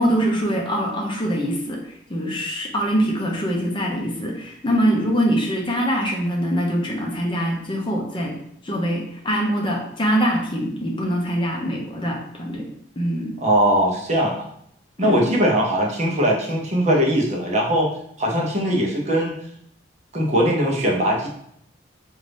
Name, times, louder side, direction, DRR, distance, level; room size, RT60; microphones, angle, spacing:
voice 1, 0.0-1.8 2.1-8.3 8.6-12.6 13.0-13.3 15.0-15.4, equal, 30° left, 0 dB, 0.7 m, -23 dB
voice 2, 13.4-14.4 15.0-17.9 18.2-19.4 20.1-21.3, equal, 40° right, -1 dB, 0.8 m, -20 dB
3.8 x 2.6 x 3.4 m, 0.70 s
head